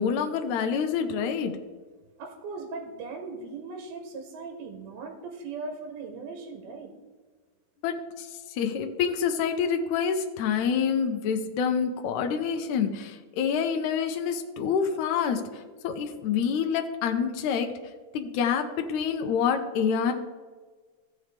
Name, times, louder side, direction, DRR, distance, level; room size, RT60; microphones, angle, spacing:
voice 1, 0.0-1.5 7.8-17.7 18.1-20.1, left 7 dB, 90° left, 5 dB, 1.6 m, -27 dB
voice 2, 2.2-6.9, right 4 dB, 80° right, 2 dB, 2.9 m, -39 dB
15.0 x 6.1 x 3.3 m, 1.4 s
omnidirectional pair, 4.3 m